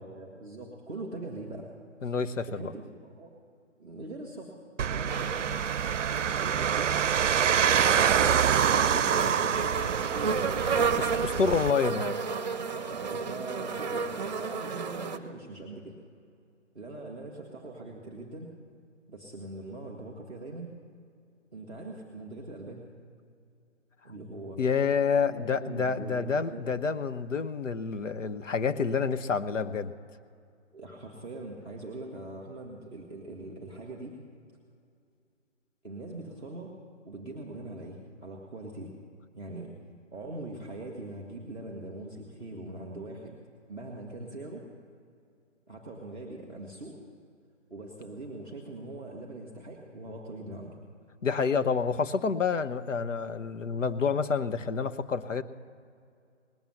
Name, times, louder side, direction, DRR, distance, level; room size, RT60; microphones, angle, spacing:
voice 1, 0.0-1.7 2.0-2.1 2.5-3.3 3.8-5.4 6.4-7.1 7.8-9.6 10.1-11.1 11.8-12.0 12.7-16.0 16.7-18.5 19.1-20.7 21.5-22.9 24.0-24.6 25.3-26.7 30.7-34.1 35.8-36.7 37.0-38.9 39.3-39.7 40.1-43.3 43.7-44.7 45.7-46.9 47.7-50.8, right 2 dB, 5° left, -6 dB, 0.6 m, -42 dB
voice 2, 2.0-2.7 11.0-12.1 24.6-29.9 51.2-55.4, left 5 dB, 90° left, 11 dB, 0.8 m, -28 dB
sound 1, 4.8-11.7, right 8 dB, 80° right, 0.6 m, -26 dB
sound 2, 5.1-15.2, right 5 dB, 35° right, 0.7 m, -33 dB
19.0 x 7.1 x 7.7 m, 2.3 s
hypercardioid pair, 155°, 37 cm